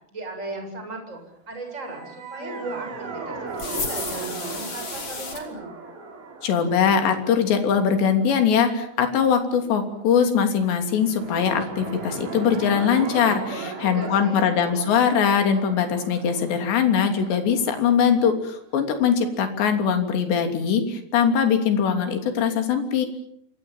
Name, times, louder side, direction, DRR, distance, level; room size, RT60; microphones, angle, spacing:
voice 1, 0.1-1.2 1.5-5.7 13.5-14.5, right 2 dB, 15° right, 4 dB, 7.5 m, -36 dB
sound 1, 1.8-9.1 10.9-18.7, right 4 dB, 90° right, 7.0 m, -38 dB
sound 2, 3.6-5.4, left 5 dB, 35° left, 3.9 m, -32 dB
voice 2, 6.4-23.1, left 7 dB, 75° left, 6 dB, 5.2 m, -21 dB
28.0 x 25.0 x 7.4 m, 0.69 s
omnidirectional pair, 5.1 m